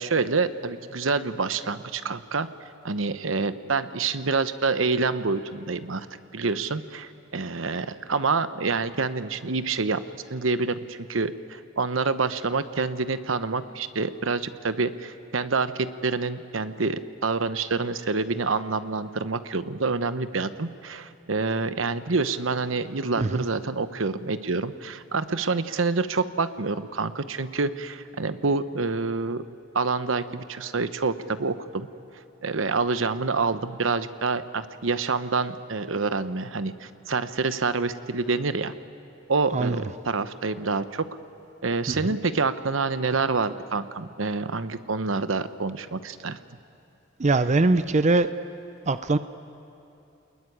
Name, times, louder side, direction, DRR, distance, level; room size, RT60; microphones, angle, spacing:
voice 1, 0.0-2.5 2.8-6.1 6.3-10.0 10.3-29.4 29.7-31.9 32.4-38.7 39.3-41.1 41.6-46.4, right 4 dB, 85° right, 12 dB, 1.0 m, -27 dB
voice 2, 47.2-48.3 48.9-49.2, right 2 dB, 35° right, 12 dB, 0.5 m, -22 dB
28.5 x 21.0 x 9.9 m, 2.7 s
head